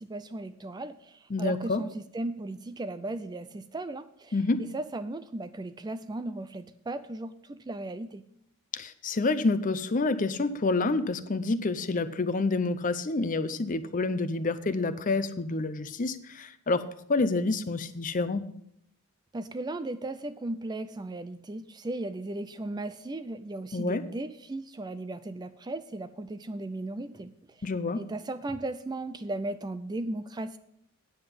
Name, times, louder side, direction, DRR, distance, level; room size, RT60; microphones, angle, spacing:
voice 1, 0.0-8.2 19.3-27.3 27.6-27.7 27.9-30.6, right 2 dB, 20° right, 11 dB, 0.4 m, -36 dB
voice 2, 1.3-1.8 4.3-4.6 8.7-16.8 17.1-18.5 23.7-24.0 27.6-28.0, left 3 dB, 35° left, 12 dB, 0.6 m, -28 dB
9.5 x 7.9 x 5.3 m, 0.70 s
head